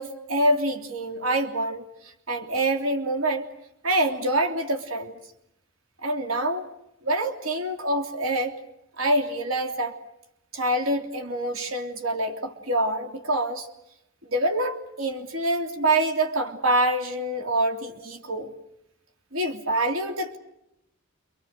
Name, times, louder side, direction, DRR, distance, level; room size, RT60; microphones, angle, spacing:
voice 1, 0.0-3.5 3.8-5.2 6.0-6.7 7.0-8.6 9.0-10.0 10.5-13.7 14.2-18.5 19.3-20.4, right 1 dB, 70° right, 5 dB, 3.2 m, -26 dB
29.0 x 26.0 x 6.6 m, 0.81 s
head